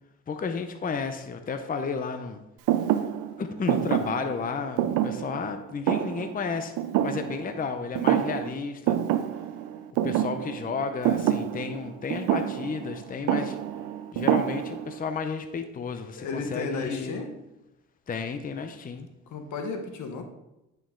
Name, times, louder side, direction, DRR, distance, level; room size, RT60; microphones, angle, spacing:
voice 1, 0.3-2.4 3.4-6.7 7.0-9.0 10.0-13.6 14.1-17.2 18.1-19.1, left 5 dB, 30° left, 8 dB, 0.6 m, -32 dB
Thump thud, 2.7-7.7 8.0-8.6 8.9-15.0, right 11 dB, 90° right, 0.5 m, -27 dB
voice 2, 16.2-17.4 19.3-20.2, left 4 dB, 75° left, 5 dB, 1.1 m, -33 dB
9.4 x 5.4 x 3.7 m, 0.95 s
cardioid pair, 90°, 30 cm